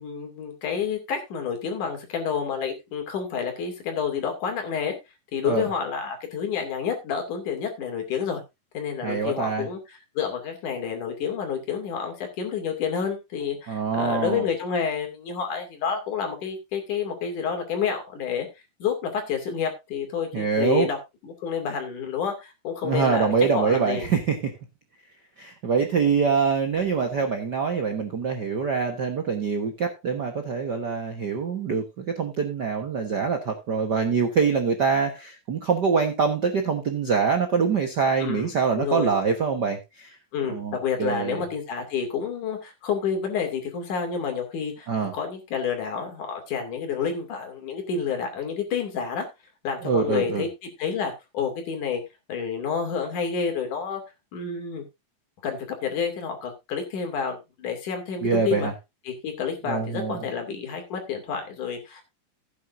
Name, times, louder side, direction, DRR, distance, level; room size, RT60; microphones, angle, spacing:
voice 1, 0.0-5.0 5.3-8.4 8.7-9.8 10.2-18.5 18.8-21.0 21.2-24.1 38.2-39.1 40.3-49.3 49.6-52.0 52.3-54.0 54.3-54.8 55.4-58.7 59.1-62.0, left 6 dB, 70° left, 4 dB, 4.1 m, -29 dB
voice 2, 9.0-9.7 13.7-14.4 20.3-20.9 22.8-24.5 25.4-40.2 40.5-41.4 44.9-45.1 49.8-50.4 58.2-58.7 59.7-60.2, right 5 dB, 55° right, 4 dB, 1.1 m, -24 dB
16.0 x 9.3 x 2.6 m, 0.24 s
omnidirectional pair, 3.7 m